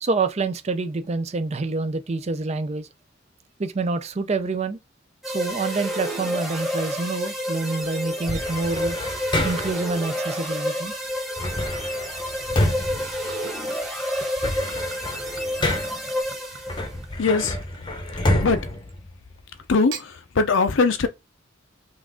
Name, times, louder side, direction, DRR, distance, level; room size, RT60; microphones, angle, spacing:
voice 1, 0.0-2.9 3.6-4.8 5.3-9.0 9.4-10.9, right 3 dB, 30° right, 0.5 m, -27 dB
sound 1, 5.2-17.0, equal, ahead, 1.1 m, -29 dB
sound 2, 8.3-9.9 11.4-13.8 14.2-16.1 16.7-19.7, left 1 dB, 25° left, 0.8 m, -28 dB
Gurgling / Chink clink / Liquid, 12.9-19.0 19.7-20.1, right 6 dB, 75° right, 0.9 m, -45 dB
voice 2, 17.2-17.9 18.4-18.7 19.7-21.1, left 4 dB, 65° left, 0.6 m, -22 dB
5.7 x 2.5 x 3.6 m
head